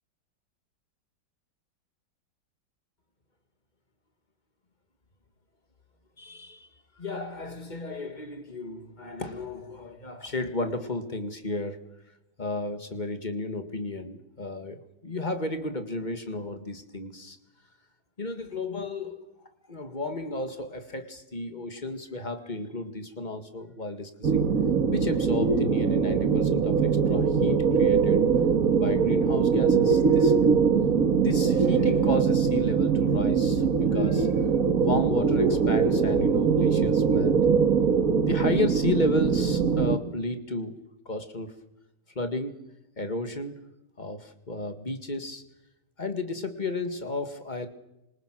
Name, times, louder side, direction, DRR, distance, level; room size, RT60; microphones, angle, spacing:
voice 1, 6.2-6.7 7.0-11.8 12.4-17.4 18.2-19.2 19.7-24.5 24.9-28.3 28.7-30.3 31.2-34.4 34.8-37.4 38.3-40.8 41.1-41.5 42.2-42.6 43.0-43.6 44.0-45.4 46.0-47.7, left 2 dB, 25° left, 8 dB, 2.0 m, -33 dB
sound 1, 24.2-40.0, right 6 dB, 55° right, 1.8 m, -22 dB
28.5 x 26.5 x 6.2 m, 0.90 s
omnidirectional pair, 1.9 m